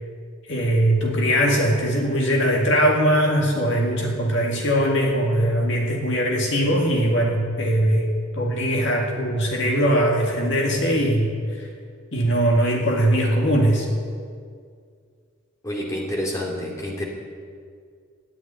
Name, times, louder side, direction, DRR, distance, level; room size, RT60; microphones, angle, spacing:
voice 1, 0.5-8.1 8.3-11.7 12.1-13.9, equal, 55° left, 0 dB, 2.0 m, -21 dB
voice 2, 15.6-17.1, equal, 15° left, -2 dB, 2.6 m, -28 dB
13.5 x 9.5 x 10.0 m, 2.1 s
head